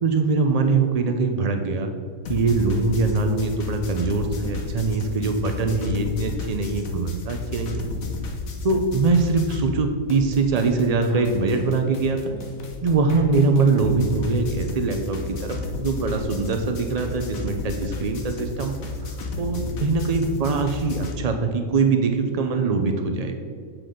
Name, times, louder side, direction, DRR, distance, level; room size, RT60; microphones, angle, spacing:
voice 1, 0.0-1.9 2.3-7.8 8.6-12.4 12.8-18.7 19.0-19.1 19.4-23.3, right 3 dB, 60° right, 5 dB, 0.4 m, -22 dB
sound 1, 2.2-9.8 10.1-21.1, left 3 dB, 75° left, 1.5 m, -33 dB
7.6 x 6.0 x 5.0 m, 2.1 s
omnidirectional pair, 1.5 m